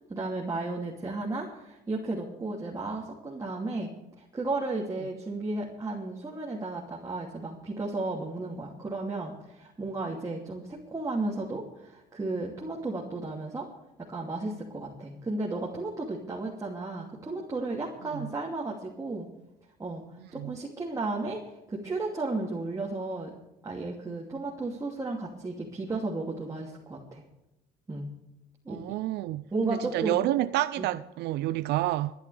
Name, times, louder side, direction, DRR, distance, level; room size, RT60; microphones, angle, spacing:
voice 1, 0.1-3.9 4.3-13.7 14.1-19.3 19.8-20.0 20.3-21.4 21.7-23.3 23.6-27.2 27.9-28.1 28.6-28.8 29.5-30.2 30.8-30.9, right 2 dB, 20° right, 2.7 m, -34 dB
voice 2, 28.7-32.1, right 15 dB, 80° right, 0.5 m, -29 dB
27.0 x 10.5 x 3.4 m
cardioid pair, 110°, 17 cm